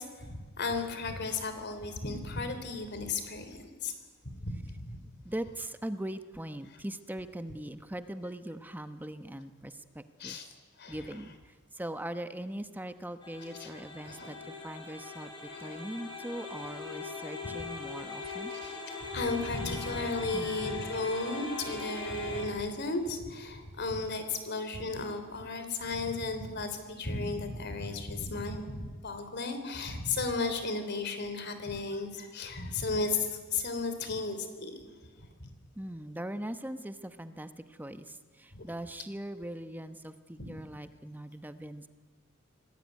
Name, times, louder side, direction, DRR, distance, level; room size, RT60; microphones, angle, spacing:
voice 1, 0.0-3.9 4.3-5.0 10.2-10.5 10.8-11.0 13.6-13.7 14.0-14.4 15.5-15.6 18.2-18.8 19.1-34.9 35.4-35.5 38.5-38.6 40.4-40.5, left 3 dB, 55° left, 8 dB, 3.6 m, -34 dB
voice 2, 5.2-10.4 10.9-18.5 20.3-20.6 35.8-41.9, right 1 dB, 10° right, 10 dB, 1.0 m, -41 dB
sound 1, 13.2-22.5, left 4 dB, 20° left, 7.0 m, -41 dB
25.5 x 18.5 x 9.4 m, 1.4 s
head